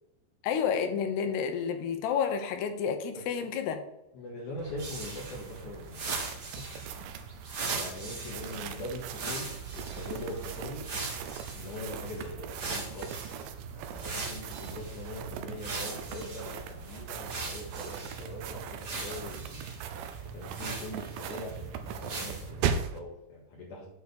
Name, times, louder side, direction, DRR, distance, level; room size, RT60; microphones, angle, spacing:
voice 1, 0.4-3.8, left 7 dB, 85° left, 6 dB, 3.1 m, -30 dB
voice 2, 3.1-3.5 4.1-6.6 7.1-7.3 7.7-10.8 11.5-13.4 13.7-19.6 20.3-23.9, left 1 dB, 60° left, -3 dB, 2.7 m, -42 dB
sound 1, 4.6-23.0, right 7 dB, 80° right, 2.4 m, -39 dB
sound 2, 4.8-13.4 13.9-15.1 15.6-18.3 18.8-21.6 22.0-22.5, right 3 dB, 60° right, 1.0 m, -40 dB
8.1 x 4.7 x 6.9 m, 0.90 s
omnidirectional pair, 4.6 m